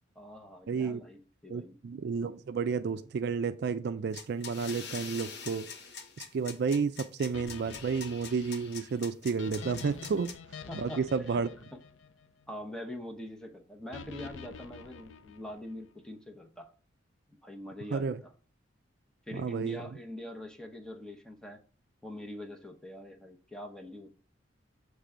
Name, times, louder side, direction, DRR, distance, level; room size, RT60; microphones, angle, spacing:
voice 1, 0.1-1.8 10.7-11.1 11.3-11.4 11.7-11.8 12.5-16.7 17.4-18.3 19.3-21.6 22.0-24.2, left 1 dB, 5° left, 0.8 m, -44 dB
voice 2, 0.7-1.0 1.5-5.7 6.3-10.3 10.7-11.5 17.9-18.2 19.3-19.8, right 5 dB, 60° right, 0.4 m, -31 dB
sound 1, 4.1-10.3, left 6 dB, 60° left, 1.1 m, -44 dB
sound 2, 7.3-12.6 13.9-15.8, left 6 dB, 85° left, 0.6 m, -47 dB
6.7 x 3.3 x 4.9 m
head